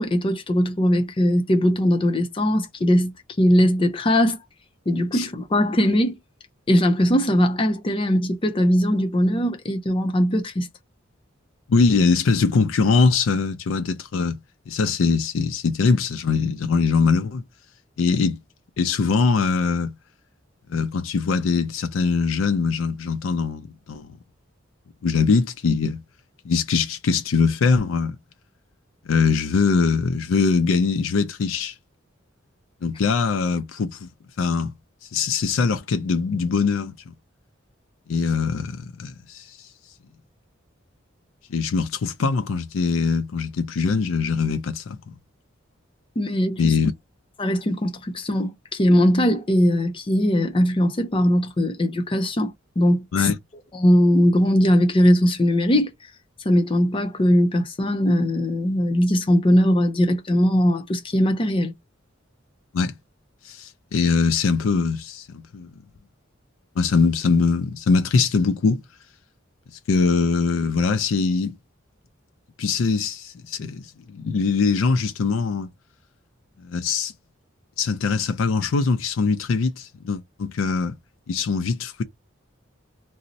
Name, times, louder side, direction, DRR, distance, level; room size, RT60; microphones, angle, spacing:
voice 1, 0.0-4.4 4.9-6.1 6.7-10.7 46.2-46.7 47.4-53.3 53.8-55.9 56.4-61.7, equal, 25° left, 0.5 m, -20 dB
voice 2, 11.7-14.4 14.7-17.4 18.0-18.4 18.8-19.9 20.7-24.2 25.0-26.0 26.4-28.2 29.1-31.7 32.8-34.1 34.4-34.7 35.1-37.1 38.1-39.6 41.5-45.1 46.6-46.9 53.1-53.4 62.7-62.9 63.4-65.7 66.8-68.8 69.9-71.6 72.6-73.8 74.1-75.7 76.6-77.1 77.8-80.9 81.3-82.0, left 5 dB, 80° left, 0.4 m, -22 dB
2.5 x 2.0 x 3.9 m
head